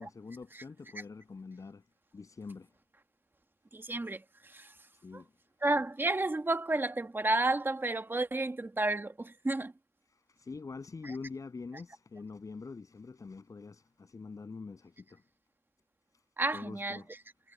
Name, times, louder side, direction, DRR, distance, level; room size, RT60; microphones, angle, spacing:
voice 1, 0.0-1.9 2.1-2.7 4.9-5.3 10.1-15.2 16.1-16.2 16.5-17.1, left 4 dB, 80° left, 7.8 m, -45 dB
voice 2, 3.7-4.7 5.1-5.2 5.6-9.7 11.0-11.1 16.4-17.0, right 2 dB, 40° right, 1.6 m, -31 dB
cardioid pair, 40°, 6 cm